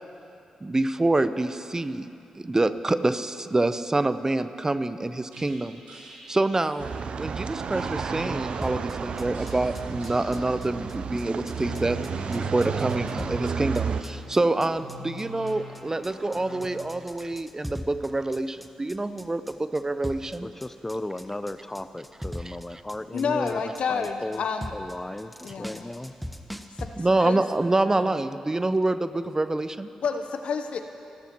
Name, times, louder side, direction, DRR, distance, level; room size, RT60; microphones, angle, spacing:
voice 1, 0.6-2.1 2.4-6.9 7.2-12.0 12.3-20.5 22.4-22.6 27.0-29.9, right 2 dB, 25° right, 12 dB, 0.7 m, -26 dB
sound 1, 5.3-6.7 7.7-8.8 9.3-10.5 11.4-17.0, equal, 80° right, 4.5 m, -43 dB
sound 2, 6.8-14.0, right 6 dB, 60° right, 0.6 m, -32 dB
sound 3, 8.6-26.9, equal, ahead, 1.1 m, -41 dB
voice 2, 20.4-23.6 23.9-24.4 24.7-26.1, left 1 dB, 15° left, 12 dB, 0.7 m, -35 dB
voice 3, 23.1-24.7 25.4-25.9 26.8-27.4 27.9-28.2 30.0-30.8, left 5 dB, 70° left, 7 dB, 0.9 m, -30 dB
27.5 x 13.0 x 3.1 m, 2.6 s
hypercardioid pair, 40°, 2 cm